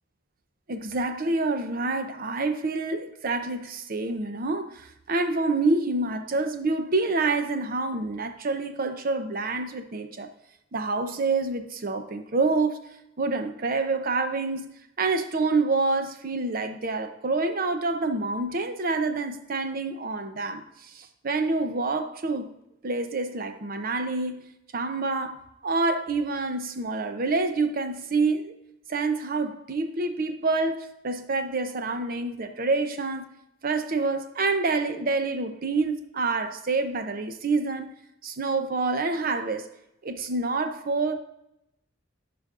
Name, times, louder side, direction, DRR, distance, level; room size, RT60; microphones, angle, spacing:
voice 1, 0.7-10.3 10.7-12.8 13.2-14.7 15.0-20.6 20.9-22.5 22.8-24.4 24.7-28.5 28.9-33.3 33.6-37.9 38.2-39.7 40.0-41.1, right 3 dB, 50° right, 7 dB, 0.7 m, -27 dB
11.5 x 5.1 x 2.5 m, 0.84 s
head